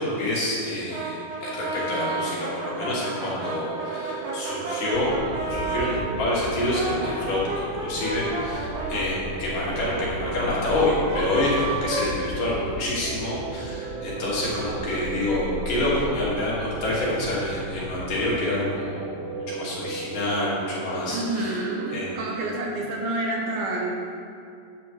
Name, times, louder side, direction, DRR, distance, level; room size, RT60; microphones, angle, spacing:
voice 1, 0.0-21.6 21.9-22.1, left 1 dB, 60° left, -7 dB, 3.2 m, -27 dB
Brass instrument, 0.9-6.1 6.5-12.9, right 2 dB, 55° right, 1.9 m, -32 dB
sound 1, 3.2-22.5, right 6 dB, 90° right, 1.9 m, -37 dB
sound 2, 4.9-18.2, left 2 dB, 80° left, 3.2 m, -37 dB
voice 2, 21.1-23.9, right 2 dB, 75° right, -1 dB, 2.6 m, -28 dB
11.5 x 9.6 x 3.1 m, 2.4 s
omnidirectional pair, 4.7 m